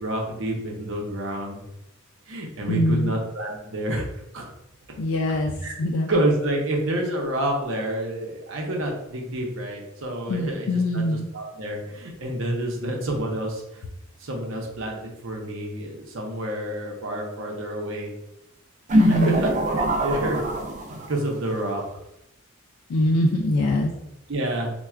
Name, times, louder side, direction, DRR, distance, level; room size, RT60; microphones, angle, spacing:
voice 1, 0.0-1.6 2.3-4.1 4.3-4.5 5.6-5.8 6.1-13.8 14.2-15.0 15.2-18.1 19.1-19.5 19.8-20.4 20.9-21.8 23.0-23.2 24.3-24.7, right 1 dB, 65° right, 0 dB, 0.7 m, -28 dB
voice 2, 2.7-3.1 5.0-5.5 5.8-6.1 10.3-11.3 19.0-19.4 22.9-23.9, left 1 dB, 80° left, 1 dB, 0.4 m, -23 dB
sound 1, 18.9-21.3, right 1 dB, 35° right, 0.4 m, -23 dB
4.3 x 2.2 x 2.4 m, 0.86 s
head